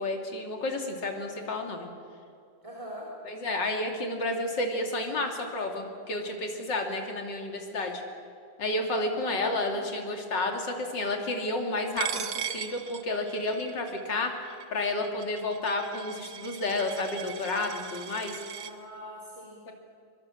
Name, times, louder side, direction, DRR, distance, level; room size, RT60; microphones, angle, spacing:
voice 1, 0.0-1.9 3.3-8.0 8.6-14.3 14.7-18.3 19.7-19.8, left 2 dB, 65° left, 2 dB, 3.3 m, -31 dB
voice 2, 2.6-3.1 9.1-9.8 18.6-19.6, equal, 15° right, -3 dB, 3.6 m, -43 dB
Coin (dropping), 12.0-18.7, right 9 dB, 60° right, 1.5 m, -39 dB
23.5 x 23.5 x 7.5 m, 2.4 s
omnidirectional pair, 2.1 m